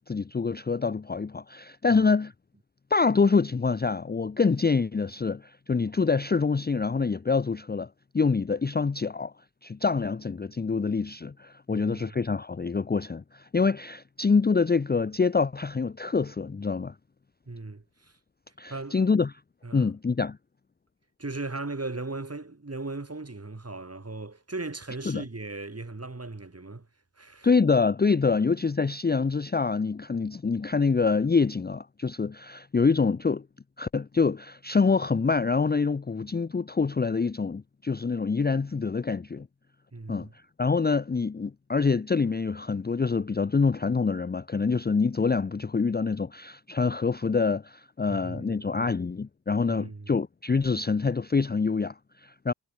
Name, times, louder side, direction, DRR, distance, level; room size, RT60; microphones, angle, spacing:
voice 1, 0.0-2.3 2.9-7.9 8.1-9.3 9.6-16.9 18.6-19.3 19.7-20.4 25.1-25.2 27.4-33.4 33.8-39.5 40.1-40.3 40.6-52.5, left 4 dB, 20° left, 0.6 m, -26 dB
voice 2, 11.7-12.2 17.5-18.2 18.7-19.0 19.6-19.9 21.2-26.9 27.2-27.5 39.9-40.3 48.1-48.9 49.7-50.2, right 3 dB, 30° right, 5.8 m, -38 dB
cardioid pair, 65°, 46 cm